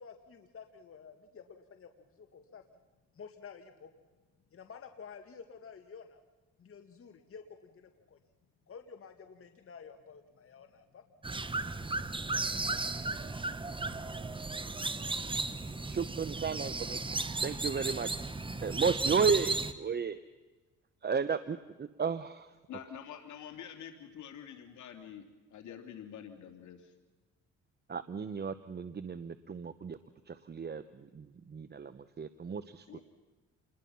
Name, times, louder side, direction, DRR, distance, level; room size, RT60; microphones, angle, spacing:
voice 1, 0.0-2.6 3.1-3.9 4.5-6.2 6.6-8.2 8.7-11.0 12.3-12.5, left 6 dB, 45° left, 5 dB, 2.1 m, -51 dB
sound 1, 11.2-19.7, right 3 dB, 15° right, 1.3 m, -35 dB
voice 2, 15.8-17.0 17.4-18.1 18.6-20.2 21.0-22.5 27.9-30.0 30.3-33.0, right 5 dB, 35° right, 13 dB, 1.0 m, -33 dB
voice 3, 22.7-26.9 32.9-33.0, left 8 dB, 75° left, 5 dB, 2.9 m, -47 dB
28.5 x 21.0 x 5.7 m, 1.2 s
cardioid pair, 90°, 30 cm